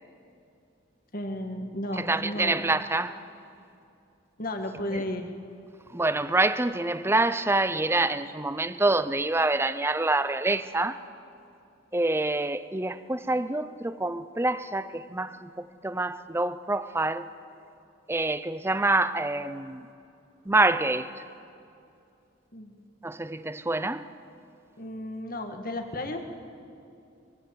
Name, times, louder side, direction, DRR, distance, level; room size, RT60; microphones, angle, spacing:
voice 1, 1.1-2.7 4.4-5.3 22.5-22.8 24.8-26.2, left 1 dB, 45° left, 5 dB, 2.0 m, -33 dB
voice 2, 2.0-3.2 4.9-5.0 5.9-11.0 11.9-15.5 15.8-17.3 18.1-19.8 20.5-21.1 23.0-24.0, right 2 dB, 10° right, 13 dB, 0.6 m, -26 dB
23.5 x 23.0 x 7.8 m, 2.5 s
head